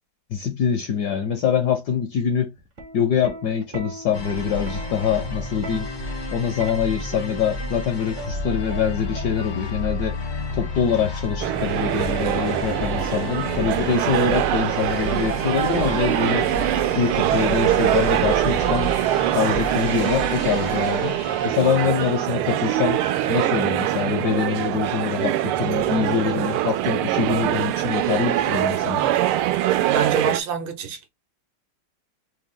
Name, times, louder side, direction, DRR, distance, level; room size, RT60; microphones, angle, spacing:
voice 1, 0.3-2.5 2.9-5.9 6.3-10.2 10.5-16.5 17.0-18.9 19.3-21.2 21.4-23.0 23.3-29.1, left 7 dB, 70° left, 1.0 m, -24 dB
Plucked string instrument, 2.6-9.8 10.9-11.2, right 2 dB, 50° right, 0.7 m, -39 dB
sound 1, 4.1-22.2, left 2 dB, 45° left, 0.6 m, -31 dB
sound 2, 11.4-30.4, right 13 dB, 85° right, 1.5 m, -23 dB
voice 2, 29.8-31.1, right 6 dB, 70° right, 1.5 m, -26 dB
5.0 x 2.3 x 3.6 m
omnidirectional pair, 2.3 m